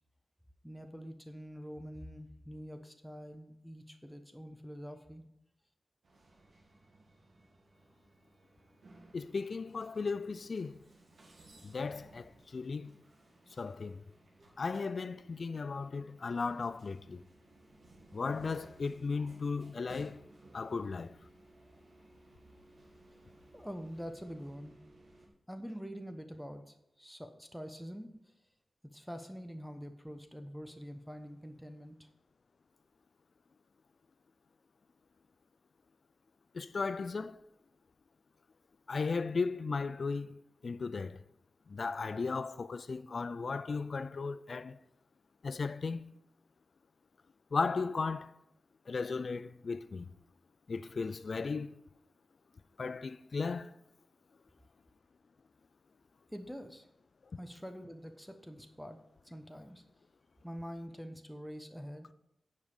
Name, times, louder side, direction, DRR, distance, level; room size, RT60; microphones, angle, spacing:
voice 1, 0.6-5.3 23.5-24.8 25.5-28.1 28.8-32.1 56.3-56.9 57.4-59.0 59.2-59.8 60.4-62.1, equal, ahead, 0.9 m, -45 dB
sound 1, 6.0-25.3, right 2 dB, 75° right, 1.8 m, -60 dB
voice 2, 9.1-10.7 11.6-12.9 13.6-14.0 14.6-17.2 18.1-20.2 20.5-21.1 36.5-37.4 38.9-40.4 40.6-41.2 41.7-44.8 45.4-46.1 47.5-48.3 48.9-50.1 50.7-51.8 52.8-53.7, left 4 dB, 65° left, 0.4 m, -36 dB
9.4 x 5.3 x 4.9 m
cardioid pair, 50°, 0 cm